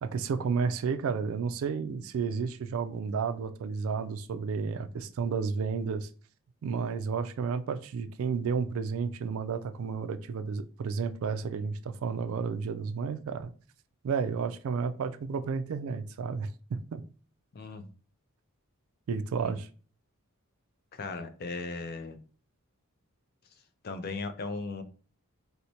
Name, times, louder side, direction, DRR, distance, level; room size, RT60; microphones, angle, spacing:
voice 1, 0.0-6.1 6.6-13.5 14.0-17.0 19.1-19.7, right 5 dB, 65° right, 0.3 m, -32 dB
voice 2, 17.5-17.9 19.4-19.6 20.9-22.2 23.8-24.8, left 3 dB, 45° left, 0.4 m, -37 dB
4.4 x 2.1 x 2.7 m
head